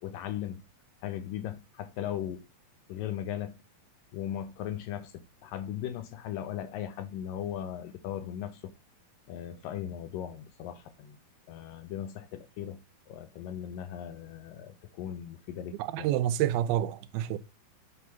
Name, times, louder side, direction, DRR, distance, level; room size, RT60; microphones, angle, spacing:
voice 1, 0.0-0.6 1.0-2.4 2.9-3.5 4.1-8.7 9.3-11.2 11.5-12.8 13.1-16.2, left 10 dB, 80° left, 2.2 m, -38 dB
voice 2, 15.8-17.4, right 12 dB, 90° right, 2.5 m, -28 dB
8.5 x 3.7 x 5.7 m
omnidirectional pair, 4.3 m